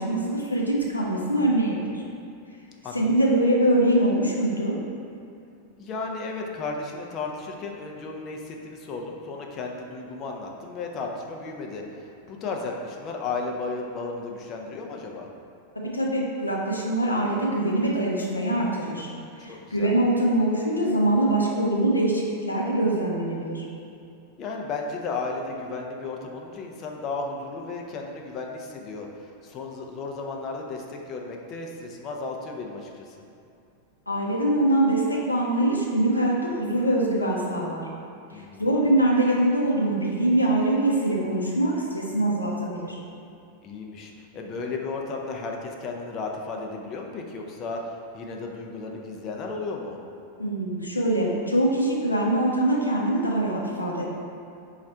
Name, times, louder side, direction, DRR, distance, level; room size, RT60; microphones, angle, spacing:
voice 1, 0.0-2.0 2.9-4.8 15.7-19.1 19.4-23.6 34.1-37.9 38.3-43.0 50.4-54.0, right 1 dB, 85° left, -3 dB, 0.6 m, -23 dB
voice 2, 5.8-15.3 19.5-19.9 24.4-33.1 38.3-38.7 43.6-50.0, left 3 dB, 35° left, 1 dB, 0.5 m, -34 dB
4.1 x 2.4 x 4.3 m, 2.5 s
figure-of-eight pair, 90°, 0 cm